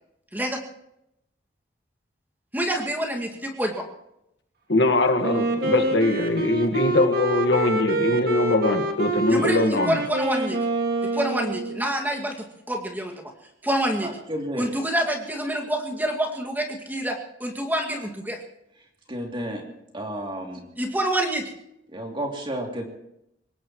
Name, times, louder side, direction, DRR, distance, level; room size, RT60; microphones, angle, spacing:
voice 1, 2.5-3.9 9.3-10.6 11.0-13.3 13.6-14.1 14.6-18.4 20.8-21.5, right 1 dB, 10° right, 1 dB, 2.1 m, -27 dB
voice 2, 4.7-9.9, left 2 dB, 65° left, 6 dB, 1.7 m, -22 dB
Wind instrument woodwind instrument, 5.2-11.9, right 2 dB, 55° right, 2.1 m, -26 dB
voice 3, 14.0-14.7 19.1-19.6 19.9-20.7 21.9-22.9, right 1 dB, 30° right, 1 dB, 2.9 m, -31 dB
23.5 x 19.5 x 3.1 m, 0.82 s
head